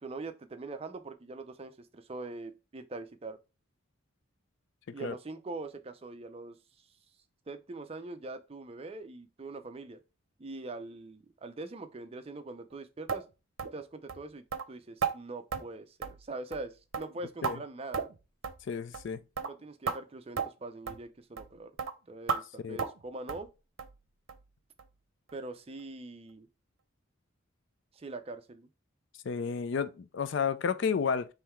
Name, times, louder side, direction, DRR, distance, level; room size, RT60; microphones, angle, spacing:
voice 1, 0.0-3.4 4.9-6.6 7.5-10.0 10.4-13.2 13.7-18.1 19.4-21.7 22.1-23.5 25.3-26.5 27.9-28.7, right 2 dB, 30° right, 0.5 m, -43 dB
sound 1, 13.1-13.2 13.6-13.8 14.1-14.2 14.5-14.7 15.0-15.2 15.5-15.7 16.0-16.3 16.5-16.7 16.9-17.6 17.9-18.2 18.4-18.6 18.9-19.1 19.4-19.5 19.9-20.0 20.4-20.5 20.9-21.0 21.4-21.5 21.8-21.9 22.3-22.4 22.8-23.0 23.3-23.5 23.8-24.0 24.3-24.4 24.8-24.9 25.3-25.4, right 5 dB, 70° right, 0.7 m, -34 dB
voice 2, 18.7-19.2 22.6-22.8 29.3-31.3, left 6 dB, 60° left, 0.4 m, -31 dB
3.8 x 3.1 x 4.4 m
head